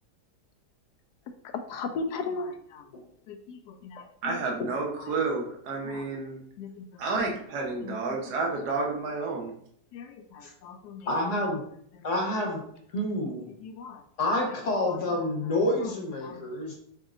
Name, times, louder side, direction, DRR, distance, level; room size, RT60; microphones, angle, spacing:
voice 1, 1.7-2.5 3.5-3.6 3.8-3.9 6.6-6.8 9.9-10.0 10.6-11.0 13.6-14.0 16.2-16.4, left 4 dB, 80° left, 7 dB, 1.1 m, -35 dB
voice 2, 4.2-6.4 7.0-9.5 15.0-15.1, right 3 dB, 75° right, 0 dB, 1.5 m, -30 dB
voice 3, 11.1-11.6 12.0-12.6 12.9-13.5 14.2-16.7, left 1 dB, 50° left, 0 dB, 1.2 m, -28 dB
5.2 x 3.6 x 2.5 m, 0.68 s
omnidirectional pair, 1.8 m